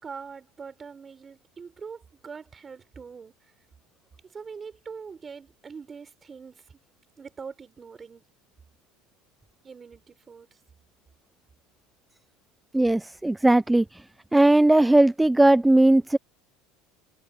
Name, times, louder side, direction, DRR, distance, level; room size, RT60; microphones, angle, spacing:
voice 1, 0.0-3.3 4.3-6.8 7.2-8.2 9.6-10.6, right 5 dB, 25° right, 5.2 m, -43 dB
voice 2, 12.7-14.1 14.3-16.2, right 1 dB, 5° right, 0.5 m, -18 dB
supercardioid pair, 105°, 0 cm